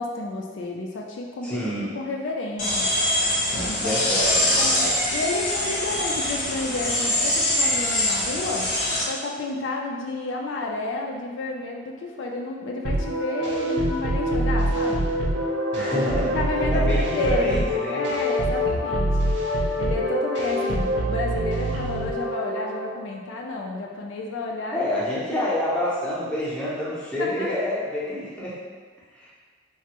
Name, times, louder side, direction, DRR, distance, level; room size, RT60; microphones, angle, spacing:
voice 1, 0.0-1.7 1.9-2.9 3.6-4.0 4.6-4.8 5.1-8.7 9.0-15.1 15.8-17.6 17.9-19.2 19.8-24.9 27.2-27.5, left 2 dB, 80° left, 0 dB, 0.4 m, -30 dB
voice 2, 1.4-1.9 3.8-4.9 15.7-16.3 16.9-18.0 24.7-28.6 29.1-29.3, left 1 dB, 5° left, -8 dB, 0.6 m, -27 dB
sound 1, 2.6-9.0, left 1 dB, 45° left, 0.7 m, -23 dB
sound 2, 12.8-22.9, equal, 70° right, 0.4 m, -25 dB
3.2 x 2.1 x 2.8 m, 1.5 s
head